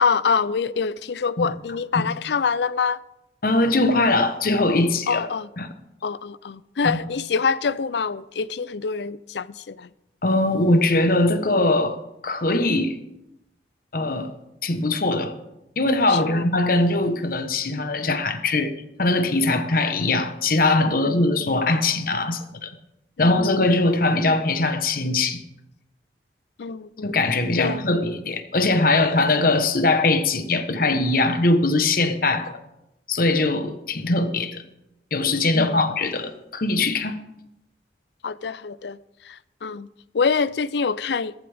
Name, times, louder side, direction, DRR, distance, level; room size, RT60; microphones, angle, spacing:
voice 1, 0.0-3.0 5.1-5.5 6.0-9.9 16.1-16.5 21.0-21.6 23.2-23.6 26.6-27.2 27.6-27.9 35.5-35.8 38.2-39.0 39.2-39.9 40.1-41.3, left 5 dB, 75° left, 0.5 m, -25 dB
voice 2, 3.4-5.2 5.6-5.7 6.8-7.0 10.2-12.0 12.2-12.9 13.9-14.3 14.6-15.4 15.8-18.7 19.0-22.7 23.2-25.4 27.0-32.6 33.1-34.6 35.1-37.2, left 2 dB, 55° left, 1.1 m, -21 dB
15.5 x 14.5 x 3.6 m
head